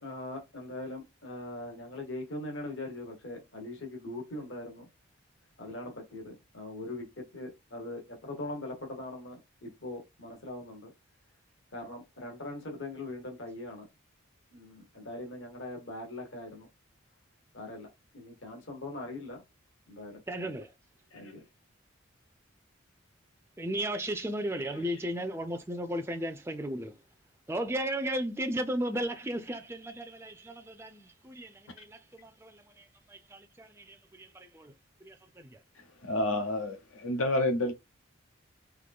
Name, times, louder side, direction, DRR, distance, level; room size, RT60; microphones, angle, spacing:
voice 1, 0.0-4.8 5.6-10.9 11.7-13.9 14.5-16.7 17.5-17.9 18.1-19.4 19.9-20.5 21.1-21.4 24.5-25.2, left 1 dB, 65° left, 1.4 m, -41 dB
voice 2, 20.3-20.7 23.6-27.0 27.5-34.7 35.0-35.6, right 1 dB, 10° right, 0.4 m, -35 dB
voice 3, 36.0-37.7, left 1 dB, 85° left, 1.0 m, -29 dB
3.7 x 3.0 x 3.6 m
head